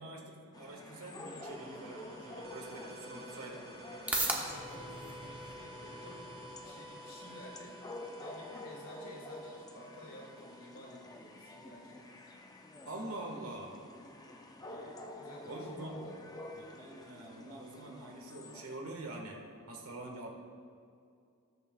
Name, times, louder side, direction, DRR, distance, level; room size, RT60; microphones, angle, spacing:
voice 1, 0.0-3.7 12.8-13.7 15.4-16.1 16.5-19.4 19.7-20.3, right 2 dB, 75° right, 0 dB, 1.5 m, -45 dB
sound 1, 0.5-18.8, left 1 dB, 15° left, 0.5 m, -49 dB
sound 2, 1.4-12.8, equal, 30° right, 1.3 m, -51 dB
sound 3, 3.5-19.6, right 2 dB, 5° right, 0.9 m, -46 dB
voice 2, 4.3-6.3 6.6-7.8 8.2-12.1 14.6-16.6, equal, 80° left, -2 dB, 2.1 m, -52 dB
19.0 x 6.6 x 2.3 m, 2.4 s
head